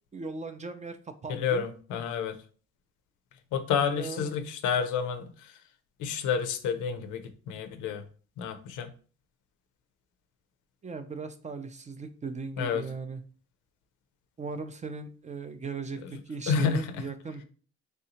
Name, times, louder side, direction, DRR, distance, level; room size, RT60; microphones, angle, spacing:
voice 1, 0.1-1.6 3.9-4.3 10.8-13.2 14.4-17.4, right 4 dB, 25° right, 9 dB, 0.4 m, -38 dB
voice 2, 1.3-2.4 3.5-5.5 6.0-7.2 7.5-8.0 8.4-8.9 12.6-12.8 16.5-17.0, left 7 dB, 85° left, 8 dB, 0.5 m, -29 dB
3.3 x 2.7 x 2.8 m, 0.40 s
cardioid pair, 90°, 30 cm